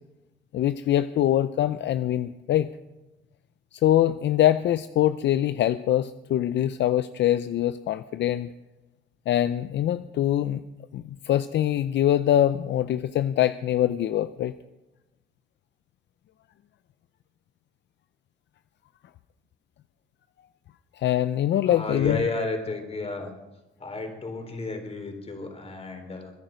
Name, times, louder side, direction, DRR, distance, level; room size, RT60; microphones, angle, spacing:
voice 1, 0.5-2.7 3.7-8.5 9.3-10.6 10.9-14.5 21.0-22.2, left 12 dB, 65° left, 13 dB, 0.5 m, -23 dB
voice 2, 21.7-23.3 23.8-26.3, left 3 dB, 30° left, 5 dB, 3.7 m, -32 dB
22.0 x 10.5 x 5.1 m, 1.0 s
cardioid pair, 90°, 20 cm